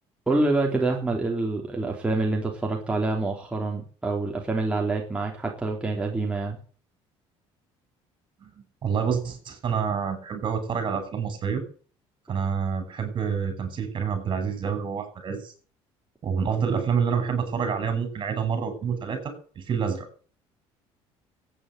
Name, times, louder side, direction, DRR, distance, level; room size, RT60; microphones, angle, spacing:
voice 1, 0.3-6.6, right 2 dB, 10° right, 0 dB, 3.2 m, -26 dB
voice 2, 8.8-11.6 12.3-15.5 16.2-20.1, right 6 dB, 45° right, 9 dB, 6.6 m, -27 dB
15.5 x 9.4 x 7.9 m, 0.43 s
cardioid pair, 100°, 11 cm